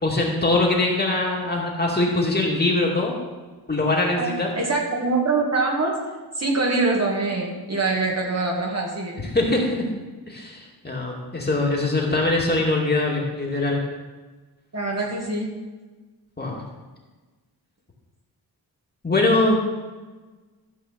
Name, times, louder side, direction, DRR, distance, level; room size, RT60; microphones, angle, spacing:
voice 1, 0.0-3.2 3.7-4.5 9.3-9.8 10.3-13.8 16.4-16.6 19.0-19.6, left 2 dB, 25° left, -2 dB, 2.3 m, -22 dB
voice 2, 4.6-6.0 6.4-9.2 14.7-15.5, right 3 dB, 40° right, -2 dB, 2.4 m, -24 dB
13.5 x 5.3 x 7.4 m, 1.3 s
wide cardioid pair, 125°, 39 cm